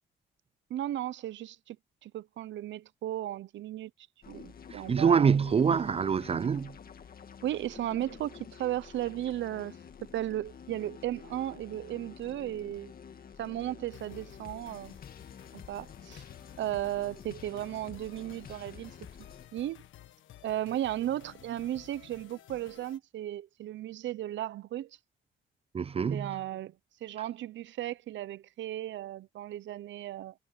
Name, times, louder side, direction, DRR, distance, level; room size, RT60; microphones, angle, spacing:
voice 1, 0.7-1.8 2.0-3.9 4.3-5.4 5.7-5.8 7.4-9.8 10.1-12.9 13.4-15.0 15.5-16.2 16.6-18.9 19.5-19.8 20.4-24.9 26.1-26.7 27.0-30.3, right 13 dB, 70° right, 0.8 m, -35 dB
sound 1, 4.2-19.5, left 7 dB, 50° left, 2.1 m, -49 dB
voice 2, 4.7-6.7 25.7-26.4, right 6 dB, 30° right, 0.4 m, -26 dB
sound 2, 13.9-23.0, left 13 dB, 80° left, 1.6 m, -54 dB
cardioid pair, 90°, 20 cm